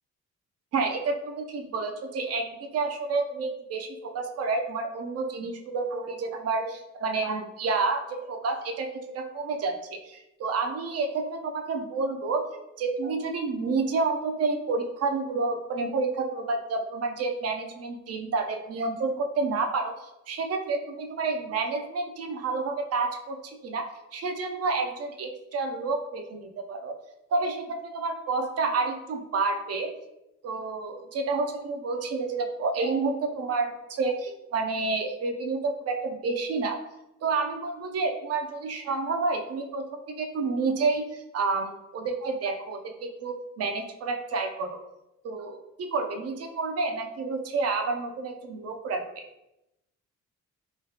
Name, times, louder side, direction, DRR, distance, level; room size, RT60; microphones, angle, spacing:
voice 1, 0.7-12.5 12.8-23.4 23.6-26.9 27.3-29.9 30.4-36.8 37.2-39.9 40.2-44.8 45.2-49.2, right 3 dB, 55° right, 4 dB, 0.5 m, -29 dB
3.1 x 2.3 x 2.7 m, 0.90 s
cardioid pair, 90°, 30 cm